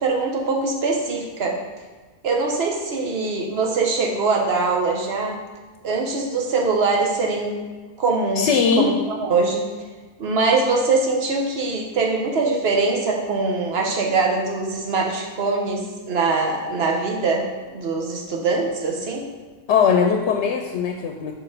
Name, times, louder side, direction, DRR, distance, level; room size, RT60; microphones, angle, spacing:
voice 1, 0.0-1.6 2.2-5.4 5.8-7.6 8.0-8.5 8.8-9.7 10.2-17.5 17.7-19.2, right 3 dB, 65° right, 1 dB, 1.2 m, -22 dB
voice 2, 8.4-9.0 19.7-21.3, left 6 dB, 85° left, 3 dB, 0.9 m, -19 dB
5.2 x 4.8 x 4.9 m, 1.4 s
omnidirectional pair, 1.1 m